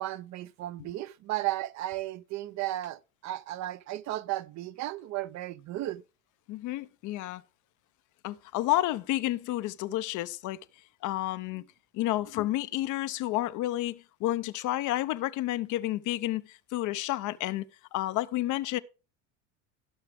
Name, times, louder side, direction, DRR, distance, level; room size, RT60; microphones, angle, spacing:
voice 1, 0.0-6.0, right 15 dB, 45° right, 0.6 m, -34 dB
voice 2, 6.5-7.4 8.2-10.6 11.0-11.6 11.9-17.6 17.9-18.8, left 15 dB, 50° left, 0.7 m, -30 dB
16.5 x 5.8 x 3.4 m
supercardioid pair, 95°, 39 cm